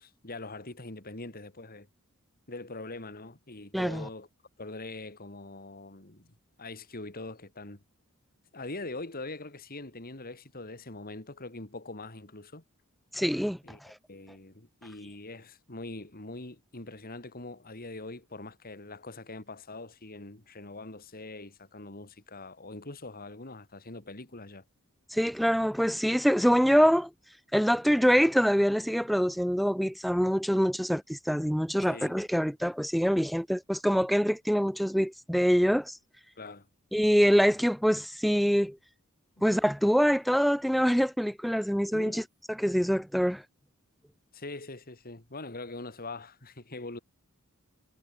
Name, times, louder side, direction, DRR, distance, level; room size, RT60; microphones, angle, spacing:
voice 1, 0.0-1.9 2.5-4.3 4.6-6.3 6.6-7.8 8.5-12.6 13.6-13.8 14.1-24.6 31.9-32.2 36.4-36.7 41.9-42.2 44.3-47.0, left 2 dB, 45° left, 3.0 m, -43 dB
voice 2, 3.7-4.1 13.1-13.6 25.1-27.1 27.5-36.0 36.9-38.8 39.4-42.2 42.5-43.4, equal, ahead, 0.9 m, -25 dB
head